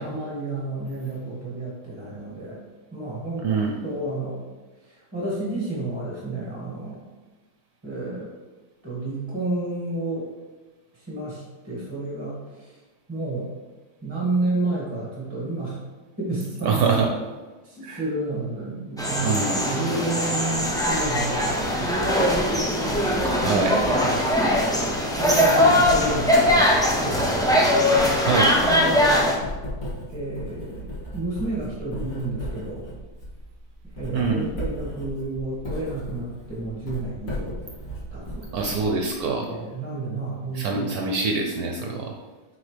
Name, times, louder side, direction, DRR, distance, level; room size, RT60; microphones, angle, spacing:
voice 1, 0.0-2.6 2.9-3.5 3.8-4.4 4.8-7.0 7.8-8.3 8.8-10.3 10.9-12.8 13.1-13.5 14.0-15.8 16.2-17.1 17.6-22.7 23.9-24.4 25.1-27.3 28.6-29.3 30.1-32.8 34.0-37.6 38.1-38.9 39.4-40.9, right 2 dB, 15° right, -6 dB, 1.9 m, -31 dB
voice 2, 3.4-3.8 16.6-17.1 17.8-18.0 19.2-19.6 23.4-23.9 25.3-25.4 28.2-28.6 34.1-34.5 38.5-39.5 40.5-42.1, right 4 dB, 70° right, 1 dB, 1.1 m, -24 dB
sound 1, 19.0-29.4, left 1 dB, 5° left, 0.5 m, -21 dB
Writing, 20.5-39.3, equal, 55° left, 2.3 m, -36 dB
8.4 x 4.5 x 3.3 m, 1.3 s
omnidirectional pair, 1.8 m